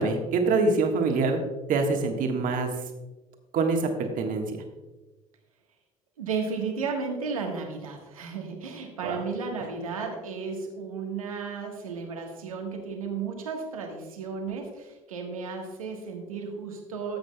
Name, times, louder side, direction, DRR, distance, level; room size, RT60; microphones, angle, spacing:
voice 1, 0.0-1.4 1.7-2.7 3.5-4.5 9.0-9.2, right 3 dB, 50° right, 4 dB, 1.5 m, -25 dB
voice 2, 6.2-17.2, right 5 dB, 80° right, 2 dB, 1.4 m, -34 dB
14.5 x 8.1 x 2.3 m, 1.2 s
figure-of-eight pair, 60°, 18 cm